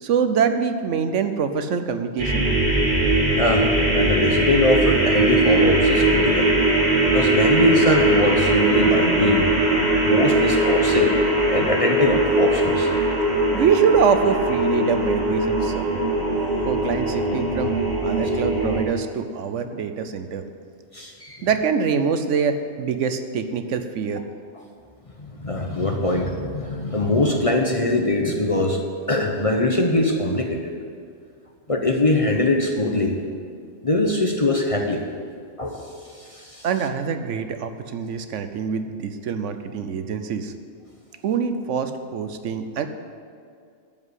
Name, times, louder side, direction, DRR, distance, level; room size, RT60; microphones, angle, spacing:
voice 1, 0.0-2.4 13.5-16.0 16.6-17.7 18.0-20.4 21.4-24.2 36.6-40.5 41.2-42.9, right 6 dB, 70° right, 9 dB, 1.0 m, -24 dB
sound 1, 2.2-18.8, right 2 dB, 40° right, 2.2 m, -20 dB
voice 2, 3.4-6.5 7.1-9.5 10.0-11.1 11.5-12.9 13.4-13.5 20.9-21.5 25.2-28.8 29.1-30.7 31.7-33.1 33.8-35.0 35.6-36.7, left 2 dB, 30° left, 2 dB, 0.8 m, -22 dB
12.5 x 5.4 x 8.3 m, 2.3 s
omnidirectional pair, 1.3 m